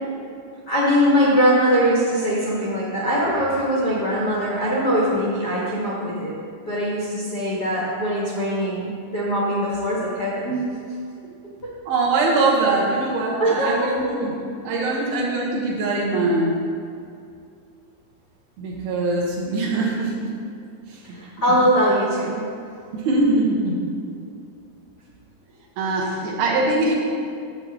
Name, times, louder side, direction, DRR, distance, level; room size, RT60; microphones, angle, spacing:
voice 1, 0.7-6.3 6.7-10.6 11.6-11.7 13.4-14.1 21.0-22.4 26.1-26.2, equal, 70° left, -6 dB, 0.9 m, -21 dB
voice 2, 11.9-14.4 14.6-16.5 18.6-20.3 20.9-21.2 21.5-21.7 22.9-23.8 25.8-26.9, right 2 dB, 75° right, -3 dB, 3.1 m, -22 dB
11.5 x 7.7 x 3.0 m, 2.4 s
omnidirectional pair, 4.5 m